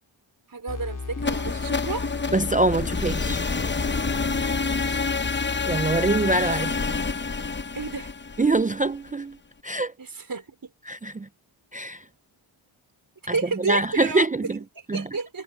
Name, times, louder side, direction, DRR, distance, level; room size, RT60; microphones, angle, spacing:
voice 1, 0.5-2.1 7.7-8.1 10.0-10.6 13.3-14.3 14.7-15.4, right 4 dB, 40° right, 5.0 m, -31 dB
sound 1, 0.7-6.7, left 4 dB, 35° left, 4.7 m, -35 dB
sound 2, 1.2-9.1, left 4 dB, 20° left, 0.9 m, -28 dB
voice 2, 2.3-3.4 5.7-6.9 8.4-9.4 9.6-9.9 10.9-11.3 11.7-12.0 13.7-14.6 14.9-15.0, right 2 dB, 15° right, 0.5 m, -24 dB
cardioid pair, 70°, 50 cm